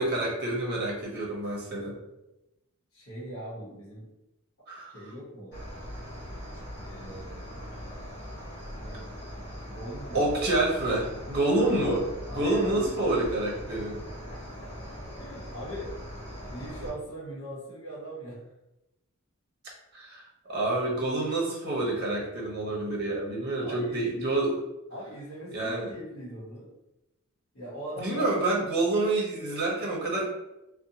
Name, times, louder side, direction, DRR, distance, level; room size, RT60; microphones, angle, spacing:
voice 1, 0.0-1.9 4.7-4.9 10.1-14.0 19.9-24.6 25.5-25.9 28.0-30.3, right 2 dB, 50° right, -3 dB, 0.8 m, -28 dB
voice 2, 2.9-4.1 4.9-5.6 6.5-7.6 8.8-10.4 12.3-12.7 13.7-13.8 14.3-14.7 15.2-15.9 16.5-18.4 23.4-24.1 24.9-26.7 27.5-28.3, right 1 dB, 65° left, -7 dB, 0.9 m, -41 dB
Cricket, 5.5-16.9, equal, 20° left, 1.5 m, -41 dB
2.7 x 2.1 x 2.7 m, 0.95 s
head